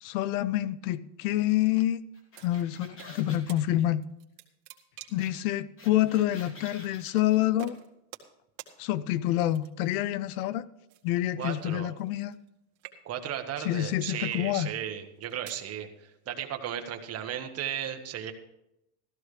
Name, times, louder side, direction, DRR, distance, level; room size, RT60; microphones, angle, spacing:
voice 1, 0.0-2.0 2.4-4.0 5.1-7.8 8.8-10.6 11.0-12.3 13.6-14.7, left 13 dB, 80° left, 0.7 m, -27 dB
sound 1, 2.1-3.5 5.2-5.3 5.6-7.4, left 1 dB, 30° left, 3.0 m, -49 dB
sound 2, 2.3-3.1 3.5-3.6 4.0-5.3 6.1-6.3 7.2-7.3 7.6-8.3 8.6-8.7 9.5-9.9 10.9-12.5 12.7-13.3 14.0-14.3 15.0-15.7, right 13 dB, 60° right, 1.8 m, -48 dB
voice 2, 11.4-11.9 13.0-18.3, right 9 dB, 35° right, 1.4 m, -35 dB
15.5 x 13.5 x 3.3 m
supercardioid pair, 145°, 43 cm